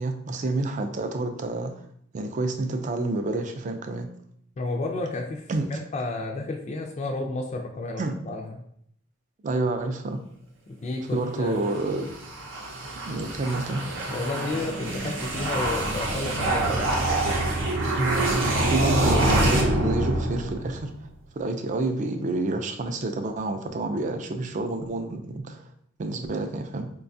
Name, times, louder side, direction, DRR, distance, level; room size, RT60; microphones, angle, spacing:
voice 1, 0.0-1.8 2.1-4.1 5.5-5.7 8.0-8.2 9.4-10.2 11.1-12.1 13.1-13.8 18.0-18.3 18.7-20.9 21.4-25.7 26.0-26.9, right 2 dB, 40° right, 6 dB, 0.4 m, -28 dB
voice 2, 4.6-5.4 5.7-8.4 10.8-11.6 14.1-16.8, left 2 dB, 35° left, 1 dB, 0.3 m, -31 dB
sound 1, 11.5-20.9, right 1 dB, 75° right, 0.7 m, -26 dB
4.8 x 2.3 x 2.6 m, 0.69 s
head